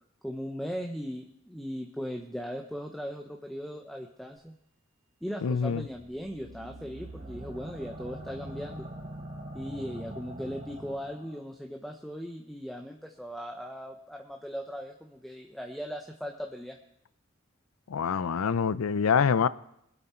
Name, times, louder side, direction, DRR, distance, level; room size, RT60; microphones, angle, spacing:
voice 1, 0.2-4.5 5.2-8.9 9.5-16.8, equal, ahead, 0.8 m, -38 dB
voice 2, 5.4-5.9 17.9-19.5, left 6 dB, 85° left, 0.5 m, -25 dB
sound 1, 5.8-11.4, right 1 dB, 35° right, 2.2 m, -43 dB
23.5 x 8.1 x 4.4 m
head